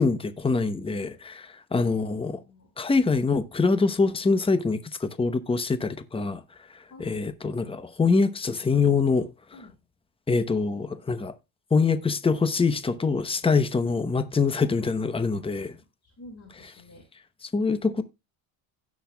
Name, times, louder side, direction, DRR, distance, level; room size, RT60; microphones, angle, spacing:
voice 1, 0.0-2.4 2.8-6.4 7.0-9.3 10.3-11.4 11.7-15.8 17.5-18.0, left 4 dB, 10° left, 0.9 m, -24 dB
voice 2, 1.7-2.7 6.9-7.8 9.5-9.8 16.0-17.0, left 2 dB, 30° left, 4.4 m, -50 dB
16.5 x 6.4 x 2.3 m
cardioid pair, 115°, 46 cm